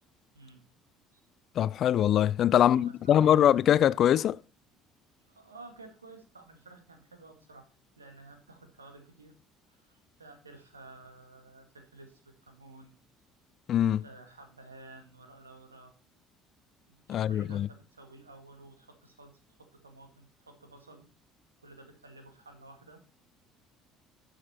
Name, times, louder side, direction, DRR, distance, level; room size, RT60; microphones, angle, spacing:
voice 1, 1.6-4.4 13.7-14.0 17.1-17.7, left 10 dB, 45° left, 0.4 m, -23 dB
voice 2, 2.6-3.4 5.3-7.6 8.0-9.4 9.7-13.0 14.0-15.9 16.9-21.1 21.6-23.0, right 2 dB, 85° right, 2.0 m, -52 dB
12.0 x 6.5 x 4.3 m
figure-of-eight pair, 55°, 0 cm